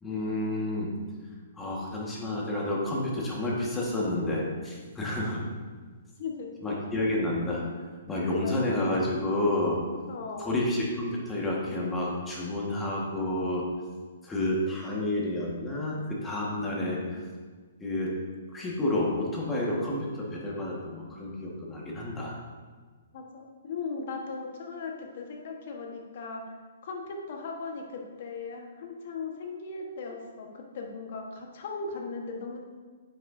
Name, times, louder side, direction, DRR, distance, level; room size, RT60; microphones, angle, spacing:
voice 1, 0.0-0.9 1.6-5.4 6.6-7.6 8.1-9.8 10.4-13.6 14.2-17.2 17.8-18.1 18.5-22.3, left 1 dB, 10° left, -4 dB, 1.6 m, -30 dB
voice 2, 6.2-6.8 7.1-7.2 8.4-8.9 10.1-10.6 16.8-17.1 23.1-26.4 26.8-32.6, left 4 dB, 55° left, 1 dB, 1.3 m, -38 dB
9.3 x 6.5 x 2.7 m, 1.5 s
hypercardioid pair, 145°, 0 cm